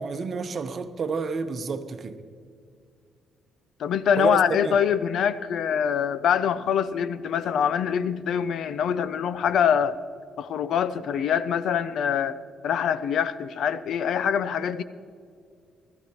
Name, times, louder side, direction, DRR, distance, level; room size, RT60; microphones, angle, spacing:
voice 1, 0.0-2.2 4.2-4.8, right 4 dB, 50° right, 0.9 m, -30 dB
voice 2, 3.8-10.0 10.4-12.4 12.6-14.8, left 8 dB, 70° left, 0.6 m, -24 dB
19.5 x 13.0 x 3.1 m
cardioid pair, 90°, 0 cm